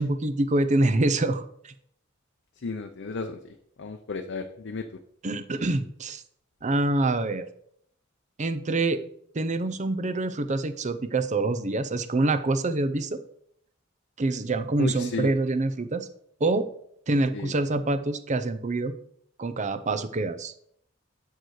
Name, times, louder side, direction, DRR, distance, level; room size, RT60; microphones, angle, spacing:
voice 1, 0.0-1.7 5.2-6.2 6.6-7.4 8.4-9.0 9.3-13.2 14.2-16.1 16.4-16.7 17.1-18.9 19.4-20.5, right 2 dB, 35° right, 11 dB, 0.6 m, -26 dB
voice 2, 2.6-3.4 3.8-4.9 14.8-15.3 17.3-17.5, left 3 dB, 60° left, 5 dB, 0.6 m, -32 dB
8.0 x 6.7 x 4.8 m, 0.69 s
head